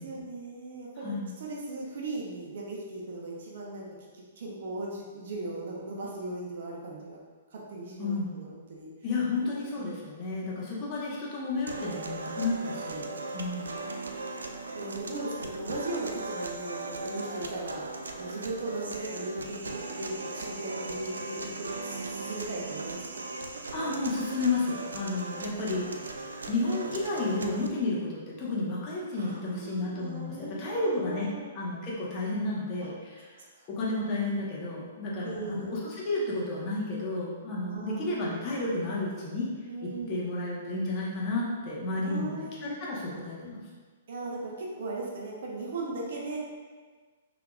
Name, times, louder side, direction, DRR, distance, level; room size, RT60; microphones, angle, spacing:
voice 1, 0.0-7.2 7.5-8.9 9.4-9.7 12.5-12.6 14.7-17.9 18.1-23.2 25.3-25.6 29.2-31.4 32.8-32.9 33.3-33.7 35.2-35.8 37.6-38.5 39.7-40.3 42.0-42.7 44.1-46.4, right 2 dB, 55° right, -3 dB, 1.0 m, -38 dB
voice 2, 8.0-8.3 9.0-13.1 13.3-13.7 23.7-25.8 26.5-33.3 33.7-39.5 39.8-43.6, left 2 dB, 35° left, -5 dB, 1.3 m, -32 dB
sound 1, 11.7-27.7, right 3 dB, 75° right, 0.4 m, -38 dB
5.7 x 3.7 x 2.5 m, 1.4 s
figure-of-eight pair, 115°, 0 cm